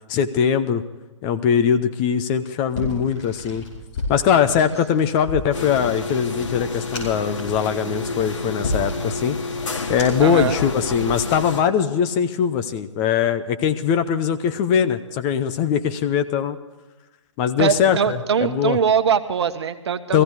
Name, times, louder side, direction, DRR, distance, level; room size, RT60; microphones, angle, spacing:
voice 1, 0.1-0.8 1.2-3.6 4.1-9.4 9.9-16.6 17.4-18.8 20.1-20.2, left 8 dB, 20° left, 9 dB, 0.7 m, -21 dB
sound 1, 2.7-10.4, left 2 dB, 40° left, 5.4 m, -33 dB
sound 2, 5.5-11.6, left 3 dB, 75° left, 2.2 m, -29 dB
voice 2, 10.2-10.6 17.6-20.2, right 7 dB, 55° right, 10 dB, 1.3 m, -21 dB
17.0 x 15.5 x 4.8 m, 1.1 s
hypercardioid pair, 145°, 16 cm